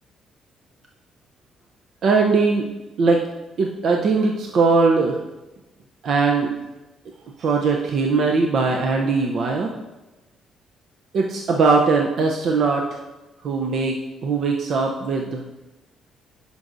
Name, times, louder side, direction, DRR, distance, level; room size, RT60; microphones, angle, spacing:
voice 1, 2.0-2.6 3.0-3.2 3.6-5.2 6.0-6.5 7.4-9.7 11.1-13.0 13.4-15.4, right 4 dB, 65° right, 1 dB, 0.6 m, -20 dB
10.5 x 5.3 x 2.6 m, 1.0 s
cardioid pair, 90°, 0 cm